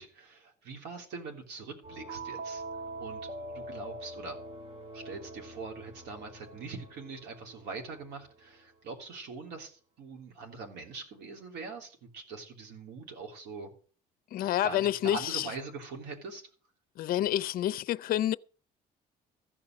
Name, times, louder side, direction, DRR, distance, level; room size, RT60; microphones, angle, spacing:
voice 1, 0.0-2.6 3.0-4.4 4.9-13.7 14.6-16.5, right 4 dB, 85° right, 3.4 m, -43 dB
sound 1, 1.8-8.3, right 2 dB, 35° right, 2.2 m, -43 dB
voice 2, 14.3-15.5 17.0-18.3, left 12 dB, 60° left, 0.5 m, -28 dB
14.5 x 5.7 x 7.5 m
cardioid pair, 110°, 17 cm